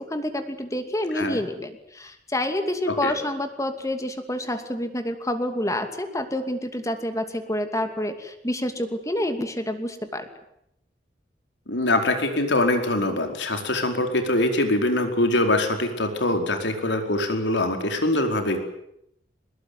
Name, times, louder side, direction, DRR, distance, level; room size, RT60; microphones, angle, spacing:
voice 1, 0.0-10.3, left 1 dB, 20° left, 7 dB, 2.6 m, -28 dB
voice 2, 11.7-18.6, left 1 dB, 90° left, 5 dB, 4.7 m, -23 dB
23.5 x 21.0 x 9.6 m, 0.78 s
head